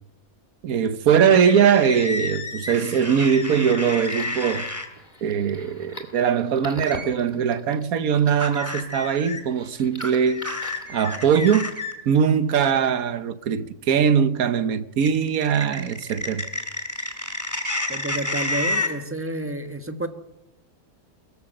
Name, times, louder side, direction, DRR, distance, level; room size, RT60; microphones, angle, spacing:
voice 1, 0.6-4.7 5.2-10.5 10.9-11.7 12.1-16.4, right 7 dB, 75° right, 1.5 m, -21 dB
sound 1, 1.3-4.9 6.9-7.1 8.4-9.4 10.0-11.9 15.0-18.9, left 2 dB, 10° left, 2.5 m, -30 dB
sound 2, 3.4-11.7, left 1 dB, 30° left, 2.7 m, -44 dB
voice 2, 17.9-20.1, right 2 dB, 10° right, 1.4 m, -30 dB
23.5 x 14.5 x 7.8 m
omnidirectional pair, 1.6 m